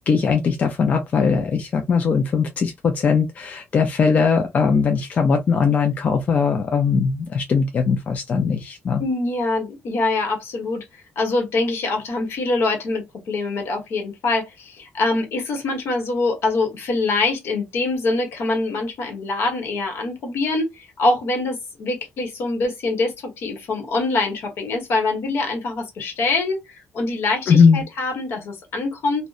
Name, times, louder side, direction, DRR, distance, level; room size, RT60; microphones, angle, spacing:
voice 1, 0.1-9.0 27.5-27.8, left 5 dB, 40° left, 0.3 m, -19 dB
voice 2, 9.0-10.8 11.2-26.6 26.9-29.3, left 3 dB, 75° left, 1.0 m, -24 dB
2.6 x 2.1 x 2.3 m
wide cardioid pair, 175°, 4 cm